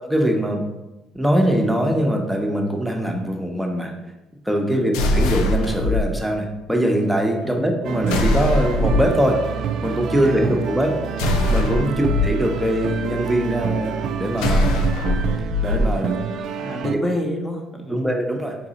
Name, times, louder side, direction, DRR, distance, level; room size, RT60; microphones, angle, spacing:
voice 1, 0.0-0.6 1.1-3.9 4.5-9.4 9.8-11.0 11.5-14.8 15.6-16.2 16.9-17.0 17.9-18.6, equal, 5° right, 1 dB, 0.7 m, -22 dB
sound 1, 4.9-6.0 8.1-9.1 11.2-12.3 14.4-15.8, left 1 dB, 85° left, 0.4 m, -21 dB
sound 2, 7.8-17.0, right 7 dB, 65° right, 0.3 m, -28 dB
voice 2, 10.2-10.6 11.8-12.2 16.6-18.1, left 1 dB, 20° left, 2 dB, 0.8 m, -29 dB
4.1 x 2.6 x 3.9 m, 1.0 s
supercardioid pair, 85°, 0 cm